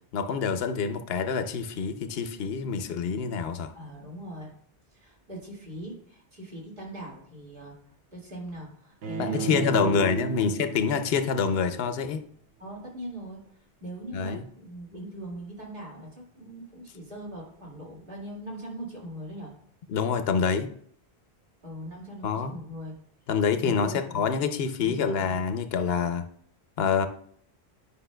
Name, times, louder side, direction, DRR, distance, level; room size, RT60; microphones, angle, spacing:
voice 1, 0.1-3.7 9.2-12.2 14.1-14.4 19.9-20.7 22.2-22.5 23.3-26.3 26.8-27.1, left 6 dB, 70° left, 9 dB, 0.8 m, -26 dB
voice 2, 3.7-4.5 4.9-7.8 8.1-10.4 12.6-13.4 13.8-19.5 21.6-22.9 23.6-24.3 24.8-25.4, right 1 dB, 55° right, -4 dB, 2.2 m, -40 dB
Bowed string instrument, 9.0-12.1, right 8 dB, 70° right, 1.0 m, -35 dB
10.0 x 5.4 x 2.2 m, 0.62 s
omnidirectional pair, 1.1 m